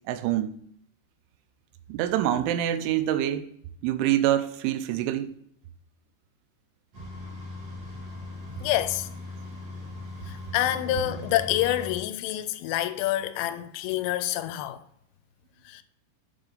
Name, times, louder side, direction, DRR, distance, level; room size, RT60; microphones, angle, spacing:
voice 1, 0.1-0.6 1.9-3.5 3.8-5.3 10.9-11.3, right 12 dB, 90° right, 3.1 m, -26 dB
sound 1, 6.9-11.9, left 2 dB, 45° right, 2.4 m, -39 dB
voice 2, 8.6-9.1 10.3-14.8 15.7-15.8, left 14 dB, 85° left, 2.6 m, -27 dB
9.2 x 4.4 x 3.9 m
omnidirectional pair, 5.4 m